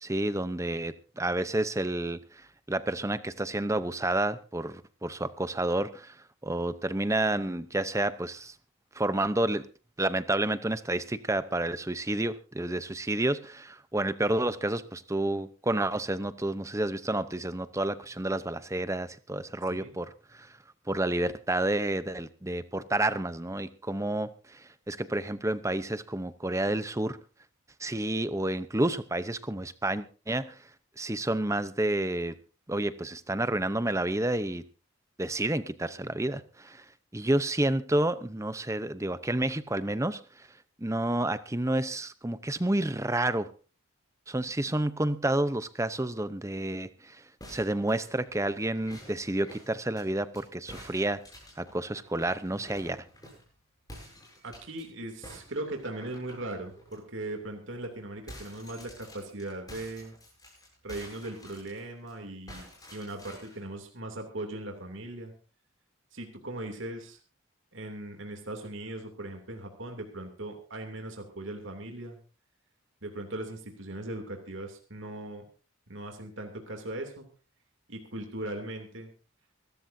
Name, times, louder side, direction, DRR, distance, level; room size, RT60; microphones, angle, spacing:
voice 1, 0.0-6.2 6.4-8.5 8.9-9.7 10.0-20.6 20.9-27.2 27.8-30.6 31.0-32.3 32.7-34.6 35.2-36.8 37.1-40.5 40.8-43.5 44.3-51.2 51.6-53.0, right 1 dB, 15° right, 0.7 m, -30 dB
sound 1, 47.4-50.4 50.7-53.5 53.9-54.8 55.2-57.0 57.4-57.5 57.8-62.1 62.5-63.6, left 1 dB, 15° left, 7.6 m, -49 dB
voice 2, 54.4-60.1 60.8-65.3 66.1-67.2 67.7-72.2 73.0-75.4 75.9-77.3 77.9-79.1, right 1 dB, 60° right, 2.8 m, -39 dB
24.5 x 14.0 x 2.7 m
head